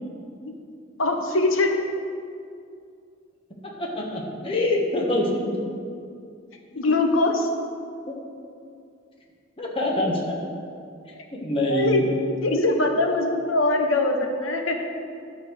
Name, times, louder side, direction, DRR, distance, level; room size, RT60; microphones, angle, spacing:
voice 1, 1.0-1.8 6.7-7.5 11.1-11.2 11.7-12.1 12.4-14.9, left 2 dB, 85° left, 4 dB, 1.1 m, -22 dB
voice 2, 3.6-5.6 6.7-7.0 8.1-8.2 9.6-10.4 11.3-12.0, left 1 dB, 30° left, -1 dB, 1.4 m, -25 dB
11.0 x 4.4 x 6.8 m, 2.4 s
head